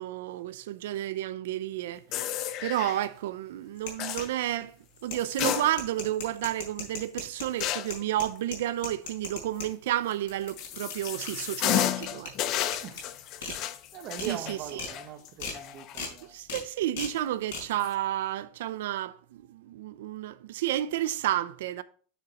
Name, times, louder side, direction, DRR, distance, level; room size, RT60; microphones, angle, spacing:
voice 1, 0.0-2.0 2.6-4.7 5.0-12.3 13.4-13.6 14.2-14.8 16.0-21.8, right 13 dB, 75° right, 0.5 m, -31 dB
sound 1, 2.1-3.0 4.0-4.3 5.2-6.1 6.4-6.5 7.6-8.0 10.1-16.2 16.6-16.7 17.6-17.9, left 12 dB, 35° left, 0.5 m, -32 dB
sound 2, 3.8-4.6 5.0-9.7 10.1-11.4 11.8-12.3 12.7-13.0 13.4-13.6 13.9-14.3 14.7-14.9 15.4-15.6 15.9-16.1 16.5-16.6 17.0-17.1 17.5-17.6, left 4 dB, 70° left, 4.6 m, -37 dB
voice 2, 13.9-16.4, right 9 dB, 30° right, 1.1 m, -40 dB
9.9 x 6.4 x 3.0 m
supercardioid pair, 175°, 0 cm